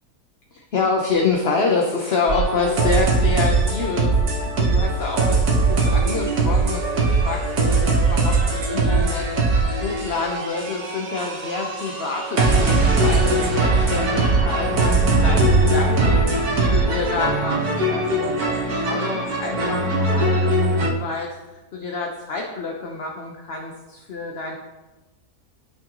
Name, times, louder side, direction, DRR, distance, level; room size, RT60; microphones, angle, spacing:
voice 1, 0.5-9.3 9.8-18.3 18.7-21.3 21.7-24.6, left 4 dB, 45° left, 0 dB, 0.9 m, -27 dB
sound 1, 2.3-20.9, right 2 dB, 65° right, 1.9 m, -20 dB
12.5 x 6.4 x 3.0 m, 1.1 s
omnidirectional pair, 1.7 m